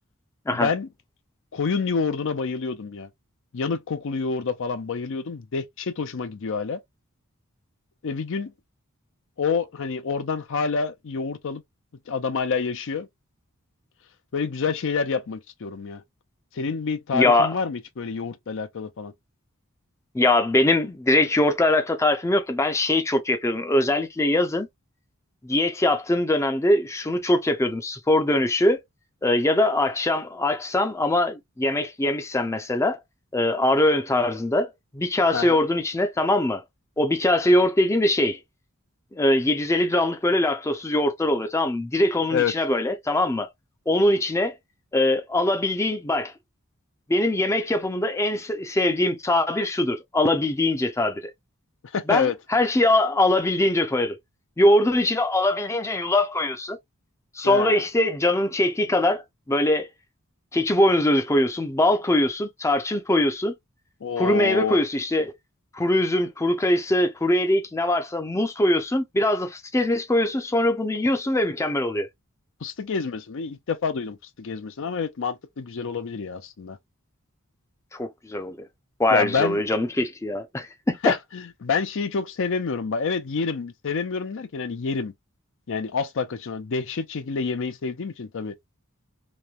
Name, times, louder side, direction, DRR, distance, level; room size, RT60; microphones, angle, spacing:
voice 1, 0.5-0.9 1.5-3.1 3.5-6.8 8.0-8.5 9.4-11.6 12.1-13.1 14.3-16.0 16.5-19.1 35.3-35.6 42.3-42.5 51.9-52.4 57.4-57.9 64.0-64.8 72.6-76.8 79.1-79.6 81.0-85.1 85.7-88.5, left 5 dB, 60° left, 0.5 m, -28 dB
voice 2, 17.1-17.5 20.1-24.7 25.4-28.8 29.2-33.0 33.3-36.6 37.0-38.4 39.1-43.5 43.9-44.5 44.9-46.3 47.1-51.3 52.1-54.1 54.6-56.8 57.3-59.2 59.5-59.9 60.5-63.5 64.2-65.3 65.7-72.1 77.9-78.7 79.0-81.0, left 1 dB, 15° left, 0.5 m, -22 dB
3.0 x 2.1 x 2.4 m
head